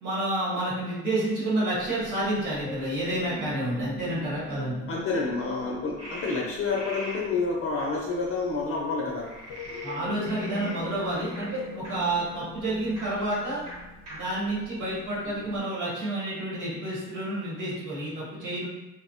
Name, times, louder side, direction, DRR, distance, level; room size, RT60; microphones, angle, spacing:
voice 1, 0.0-4.9 9.8-13.6 14.1-18.7, right 1 dB, 85° right, -7 dB, 1.3 m, -29 dB
sound 1, 1.7-15.6, left 3 dB, 90° left, 0.6 m, -42 dB
voice 2, 4.9-9.3, left 4 dB, 50° left, -2 dB, 0.5 m, -29 dB
Frog, 6.0-7.2 7.8-7.9 9.2-11.9 12.9-13.1 13.3-13.4 13.7-13.8 14.1-14.2 14.8-15.5, equal, 60° right, 1.0 m, -42 dB
2.9 x 2.0 x 2.8 m, 1.0 s
cardioid pair, 90°, 30 cm